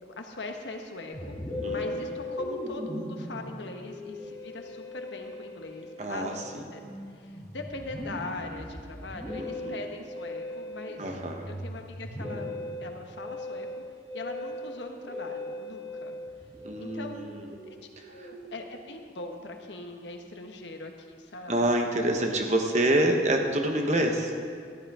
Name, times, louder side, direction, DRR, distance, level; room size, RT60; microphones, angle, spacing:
voice 1, 0.2-1.4 1.7-6.4 6.7-6.8 7.1-11.2 11.5-12.5 12.8-13.8 14.1-16.2 16.8-17.3 17.7-17.8 18.1-21.7, left 2 dB, 75° left, 4 dB, 1.2 m, -41 dB
Musical instrument, 1.1-18.7, left 1 dB, 15° left, 2.8 m, -39 dB
voice 2, 1.6-2.1 6.0-6.6 9.4-9.8 11.0-11.5 16.6-17.4 18.0-18.3 21.5-24.3, right 1 dB, 40° right, 3 dB, 1.1 m, -27 dB
14.0 x 10.0 x 4.9 m, 2.2 s
head